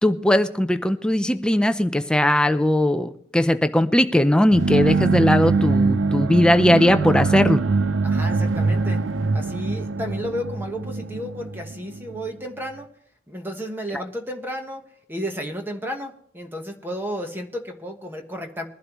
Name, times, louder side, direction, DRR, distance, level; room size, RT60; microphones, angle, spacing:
voice 1, 0.0-7.6, left 1 dB, 5° left, 9 dB, 0.5 m, -19 dB
sound 1, 4.5-12.3, right 4 dB, 80° right, 0.5 m, -23 dB
voice 2, 8.0-9.0 9.3-12.9 13.3-14.8 15.1-18.7, equal, 10° right, 3 dB, 1.1 m, -32 dB
21.5 x 11.5 x 3.1 m, 0.64 s
head